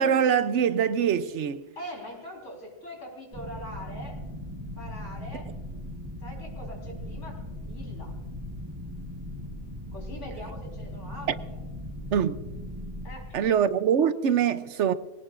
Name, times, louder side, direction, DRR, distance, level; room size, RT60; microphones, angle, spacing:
voice 1, 0.0-1.6 12.1-12.3 13.3-14.9, right 8 dB, 75° right, 1.0 m, -23 dB
voice 2, 1.8-4.2 4.8-5.5 6.2-8.1 9.9-11.3 13.0-13.4, left 1 dB, 75° left, 4.5 m, -42 dB
sound 1, 3.3-13.3, left 1 dB, 20° right, 1.3 m, -38 dB
20.5 x 18.5 x 2.5 m
omnidirectional pair, 1.2 m